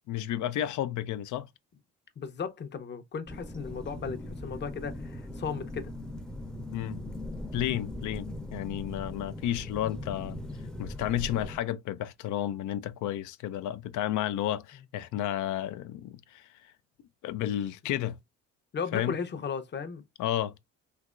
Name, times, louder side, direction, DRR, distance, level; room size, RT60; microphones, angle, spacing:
voice 1, 0.1-1.5 6.7-7.0 7.5-10.4 10.8-16.4 17.2-18.2 18.9-19.2 20.2-20.5, left 12 dB, 75° left, 0.5 m, -32 dB
voice 2, 2.2-5.9 18.7-20.0, left 6 dB, 35° left, 0.7 m, -35 dB
sound 1, 3.3-11.6, left 1 dB, ahead, 0.6 m, -40 dB
3.3 x 2.9 x 2.4 m
cardioid pair, 90°, 30 cm